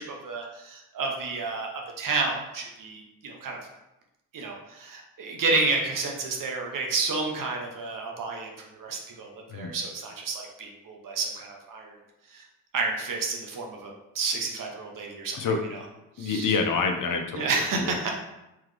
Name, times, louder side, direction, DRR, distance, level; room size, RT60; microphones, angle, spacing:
voice 1, 0.0-1.7 2.0-3.6 4.3-12.0 12.3-12.4 12.7-15.4 16.2-16.5 17.3-18.1, right 3 dB, 50° right, 1 dB, 1.0 m, -30 dB
voice 2, 16.2-18.1, left 4 dB, 45° left, 4 dB, 0.7 m, -28 dB
3.5 x 3.3 x 3.4 m, 0.92 s
supercardioid pair, 65°, 43 cm